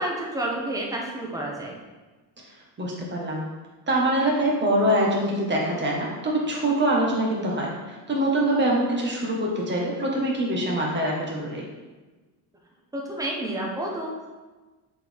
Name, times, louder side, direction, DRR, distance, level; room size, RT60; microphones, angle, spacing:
voice 1, 0.0-1.7 12.9-14.3, right 1 dB, 10° right, -2 dB, 1.0 m, -30 dB
voice 2, 2.8-3.4 3.9-11.6, right 1 dB, 25° right, -3 dB, 1.5 m, -24 dB
7.1 x 4.4 x 3.5 m, 1.2 s
cardioid pair, 145°, 40 cm